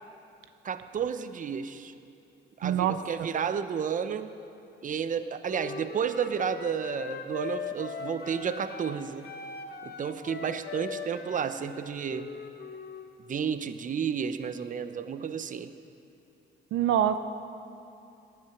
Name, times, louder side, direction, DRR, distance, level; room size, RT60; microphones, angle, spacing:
voice 1, 0.6-1.9 2.6-4.3 4.8-9.3 9.8-12.3 13.3-15.7, right 7 dB, 40° right, 11 dB, 0.7 m, -32 dB
voice 2, 2.6-3.3 16.7-17.2, right 10 dB, 80° right, 10 dB, 0.6 m, -26 dB
Wind instrument woodwind instrument, 5.4-9.0 9.2-13.1, left 5 dB, 55° left, 1.3 m, -40 dB
17.5 x 11.0 x 5.9 m, 2.7 s
cardioid pair, 90°, 20 cm